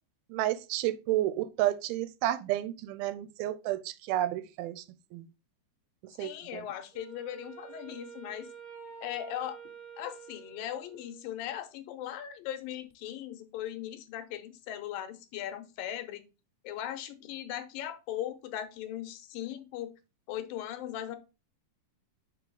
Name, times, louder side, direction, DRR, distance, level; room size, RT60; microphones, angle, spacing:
voice 1, 0.3-4.8 5.1-5.3 6.2-6.6, right 14 dB, 90° right, 2.4 m, -31 dB
voice 2, 6.2-8.5 9.0-9.6 10.0-16.2 16.6-19.9 20.3-21.2, left 11 dB, 80° left, 2.3 m, -38 dB
Wind instrument woodwind instrument, 6.9-11.3, right 7 dB, 40° right, 1.3 m, -48 dB
5.7 x 4.7 x 3.8 m
omnidirectional pair, 4.2 m